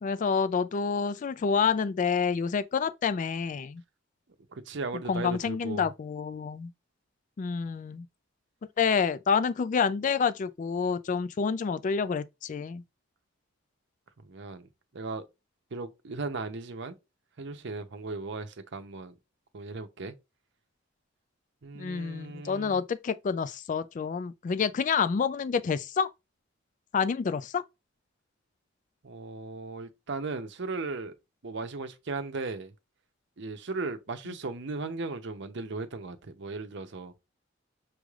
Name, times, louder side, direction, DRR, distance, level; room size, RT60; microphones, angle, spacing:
voice 1, 0.0-3.8 5.1-6.7 7.4-8.1 8.8-12.8 21.8-26.1 26.9-27.6, left 6 dB, 40° left, 0.3 m, -28 dB
voice 2, 4.5-5.9 14.2-14.7 14.9-15.2 15.7-16.9 17.4-19.1 19.5-20.1 21.6-22.8 29.0-31.1 31.4-32.7 33.4-37.1, right 3 dB, 60° right, 0.7 m, -37 dB
6.2 x 3.2 x 2.3 m
head